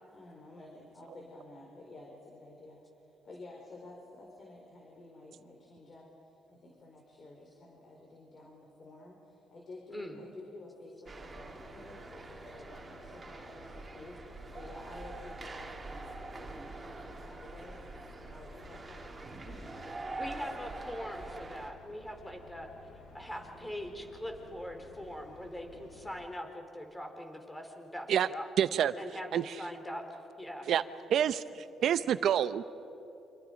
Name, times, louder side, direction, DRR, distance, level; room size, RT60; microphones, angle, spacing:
voice 1, 0.1-2.8 3.2-20.4 23.1-23.8 25.6-26.0 30.6-31.6, left 2 dB, 45° left, -1 dB, 4.4 m, -52 dB
voice 2, 9.9-10.2 20.2-22.7 23.1-28.5 29.0-30.7, equal, 10° left, 4 dB, 4.0 m, -42 dB
sound 1, 11.1-21.7, right 3 dB, 30° right, 3.2 m, -45 dB
sound 2, 11.2-26.2, left 2 dB, 85° left, 5.6 m, -55 dB
voice 3, 28.6-28.9 29.3-29.5 30.7-30.8 31.1-31.4 31.8-32.6, right 9 dB, 70° right, 13 dB, 0.8 m, -27 dB
28.5 x 26.0 x 5.2 m, 2.9 s
cardioid pair, 90°, 0 cm